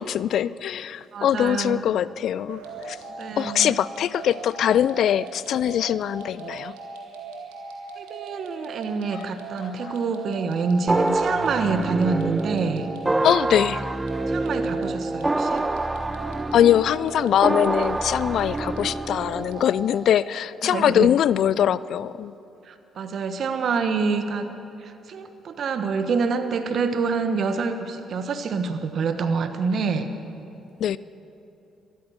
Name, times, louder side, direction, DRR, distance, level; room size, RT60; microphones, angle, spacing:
voice 1, 0.0-2.6 2.9-3.0 3.4-6.8 9.1-9.2 9.8-9.9 13.2-13.8 16.5-22.3 30.8-31.0, left 10 dB, 65° left, 19 dB, 0.3 m, -22 dB
voice 2, 1.1-1.8 3.2-3.8 8.0-12.9 14.3-15.6 18.8-18.9 20.6-21.1 22.7-24.5 24.8-30.1, right 5 dB, 60° right, 9 dB, 1.2 m, -26 dB
sound 1, 2.5-20.0, right 4 dB, 85° right, 2.0 m, -39 dB
sound 2, 10.9-19.6, right 2 dB, 20° right, 0.6 m, -26 dB
13.5 x 13.0 x 8.0 m, 2.8 s
hypercardioid pair, 50°, 0 cm